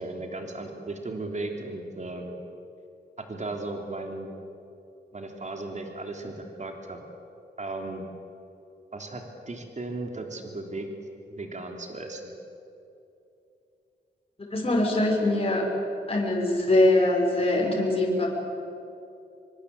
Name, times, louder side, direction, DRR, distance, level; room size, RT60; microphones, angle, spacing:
voice 1, 0.0-2.3 3.2-4.3 5.1-7.0 7.6-8.0 8.9-10.9 11.3-12.2, right 2 dB, 40° right, 3 dB, 3.4 m, -36 dB
voice 2, 14.5-15.7 16.1-18.3, left 2 dB, 30° left, -1 dB, 6.4 m, -23 dB
26.0 x 25.0 x 8.4 m, 2.8 s
wide cardioid pair, 115°, 18 cm